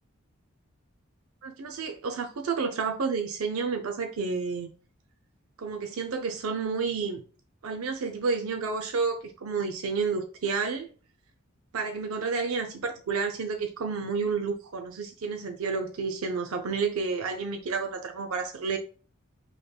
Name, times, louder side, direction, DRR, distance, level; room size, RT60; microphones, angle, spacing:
voice 1, 1.4-4.7 5.6-7.2 7.6-10.9 11.7-18.8, right 5 dB, 90° right, 0.5 m, -30 dB
4.9 x 3.1 x 2.2 m
head